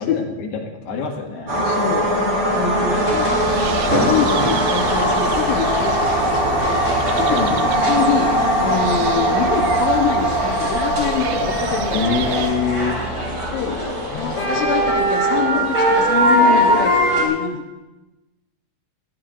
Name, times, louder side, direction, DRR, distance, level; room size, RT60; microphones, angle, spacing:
voice 1, 0.0-1.7 2.9-3.5 4.7-4.8 7.3-7.6 11.9-13.0 14.1-14.7, left 5 dB, 70° left, 0 dB, 3.8 m, -26 dB
sound 1, 1.5-15.0, right 1 dB, 35° right, 4.3 m, -21 dB
voice 2, 1.6-3.3 4.0-12.6 13.5-13.8 14.2-17.8, left 8 dB, 90° left, 2 dB, 3.3 m, -25 dB
sound 2, 2.9-17.2, right 1 dB, 15° right, 3.1 m, -23 dB
sound 3, 3.5-12.5, right 10 dB, 85° right, 2.8 m, -32 dB
21.0 x 15.5 x 2.6 m, 1.0 s
omnidirectional pair, 5.1 m